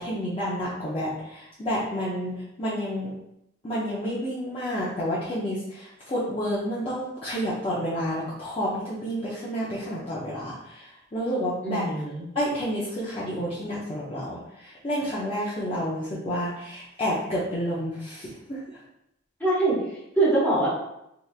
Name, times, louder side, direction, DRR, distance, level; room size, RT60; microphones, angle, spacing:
voice 1, 0.0-2.3 2.6-3.1 3.6-11.9 12.3-18.8, equal, 30° left, -8 dB, 0.6 m, -30 dB
voice 2, 11.6-12.2 19.4-19.8 20.2-20.7, right 2 dB, 10° left, -7 dB, 1.0 m, -23 dB
3.3 x 2.8 x 2.4 m, 0.81 s
head